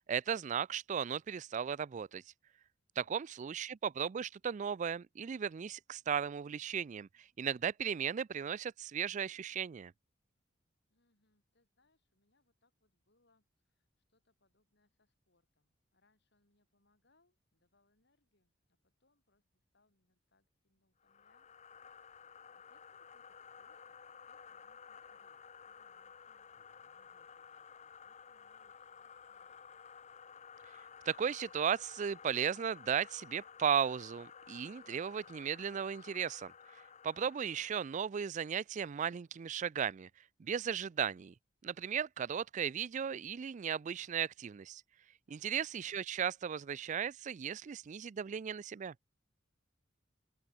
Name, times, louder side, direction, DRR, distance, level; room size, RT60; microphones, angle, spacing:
voice 1, 0.1-2.2 3.0-7.1 7.4-9.9 31.1-40.1 40.4-41.3 41.6-44.8 45.3-48.9, right 7 dB, 40° right, 0.3 m, -36 dB
voice 2, 3.0-3.6 10.9-21.5 22.6-29.8 45.3-45.6, left 2 dB, 65° left, 5.7 m, -77 dB
sound 1, 21.0-38.0, left 7 dB, 40° left, 0.8 m, -55 dB
open air
head